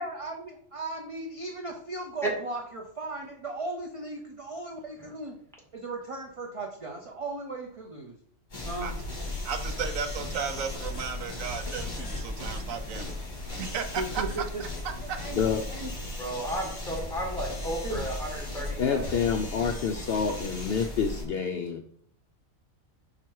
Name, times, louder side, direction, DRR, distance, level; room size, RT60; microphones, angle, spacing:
voice 1, 0.0-5.4 5.7-8.1 8.6-9.0 14.0-14.6 15.0-15.4 15.7-16.0 17.8-18.1, right 2 dB, 35° right, 2 dB, 0.6 m, -37 dB
sound 1, 8.5-21.2, left 2 dB, 35° left, 2.2 m, -36 dB
voice 2, 9.4-13.1 13.4-14.7 15.1-15.2 18.6-18.7, right 6 dB, 75° right, 7 dB, 1.1 m, -34 dB
voice 3, 16.2-19.0, right 1 dB, ahead, -1 dB, 1.7 m, -34 dB
voice 4, 18.8-21.8, left 6 dB, 65° left, 5 dB, 0.6 m, -28 dB
5.8 x 4.7 x 4.6 m, 0.62 s
omnidirectional pair, 1.4 m